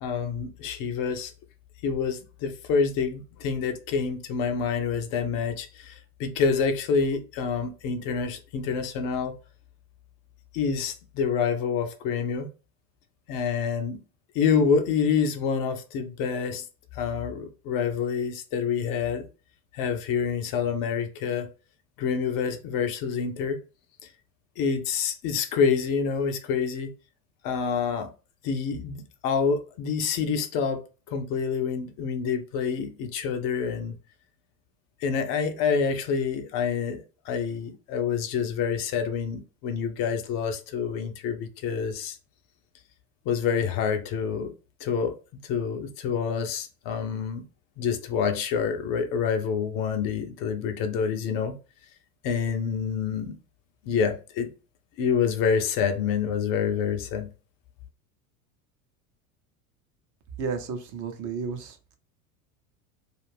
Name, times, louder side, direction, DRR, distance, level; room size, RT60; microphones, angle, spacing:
voice 1, 0.0-1.3 1.8-9.3 10.5-12.5 13.3-14.0 14.3-16.6 16.9-19.3 19.7-21.5 22.0-23.6 24.0-24.1 24.6-26.9 27.4-28.1 28.4-30.8 31.1-34.0 35.0-42.2 43.3-44.5 44.8-45.1 45.4-47.4 47.8-51.5 52.2-53.4 53.9-54.5 55.0-57.3, left 6 dB, 50° left, 0.6 m, -27 dB
voice 2, 60.4-62.0, right 5 dB, 45° right, 0.7 m, -33 dB
2.5 x 2.4 x 3.3 m
hypercardioid pair, 85°, 43 cm